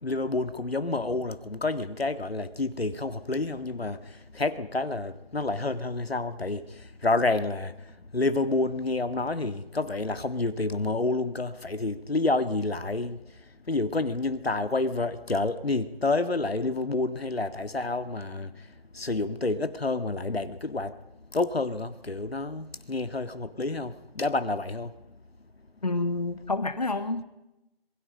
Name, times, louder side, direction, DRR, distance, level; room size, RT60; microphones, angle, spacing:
voice 1, 0.0-21.0 21.3-24.9, left 3 dB, 80° left, 2.0 m, -29 dB
voice 2, 25.8-27.2, left 2 dB, 40° left, 1.6 m, -28 dB
27.5 x 21.5 x 5.2 m
figure-of-eight pair, 180°, 30 cm